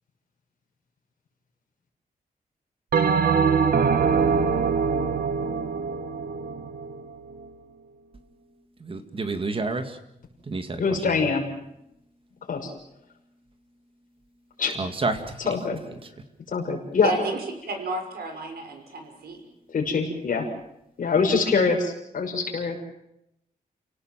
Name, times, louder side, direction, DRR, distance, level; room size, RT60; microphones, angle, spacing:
Bell, 2.9-7.5, right 6 dB, 70° right, 1.6 m, -23 dB
voice 1, 8.8-10.0 10.5-10.8 14.8-15.4, right 3 dB, 35° right, 8 dB, 2.2 m, -29 dB
voice 2, 10.8-11.4 12.5-12.7 14.6-14.7 15.5-15.8 16.5-17.1 19.7-20.5 21.0-22.8, left 5 dB, 60° left, 2 dB, 6.0 m, -24 dB
voice 3, 17.0-17.4 17.7-19.4, right 3 dB, 85° right, 5 dB, 5.9 m, -32 dB
30.0 x 18.0 x 7.6 m, 0.81 s
wide cardioid pair, 170°, 16 cm